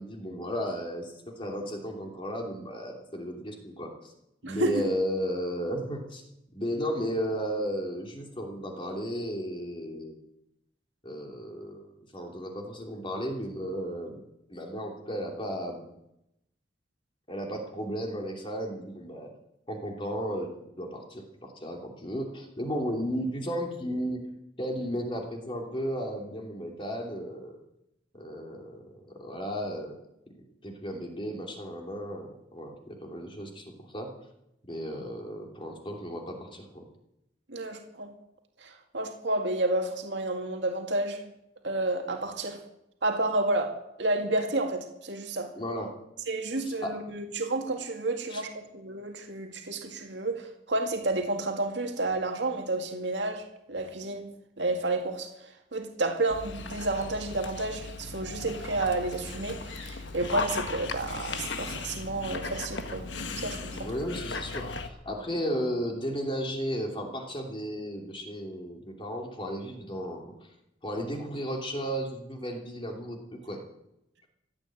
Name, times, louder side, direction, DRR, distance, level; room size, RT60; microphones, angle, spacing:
voice 1, 0.0-4.1 4.4-6.2 6.5-10.2 11.0-11.9 12.1-14.2 14.5-15.9 17.3-19.3 19.7-24.3 24.6-27.6 28.1-29.9 30.6-34.1 34.7-36.8 45.5-45.9 46.7-46.9 48.3-48.4 63.7-70.3 70.8-73.6, equal, 30° left, 1 dB, 2.9 m, -34 dB
voice 2, 4.4-4.8 37.5-38.1 38.6-41.3 41.6-42.6 43.0-45.5 46.3-54.3 54.6-63.1 63.4-63.9, right 2 dB, 80° right, 3 dB, 2.1 m, -31 dB
Dog, 56.3-64.9, left 4 dB, 85° left, 1.5 m, -37 dB
15.5 x 9.3 x 8.9 m, 0.85 s
head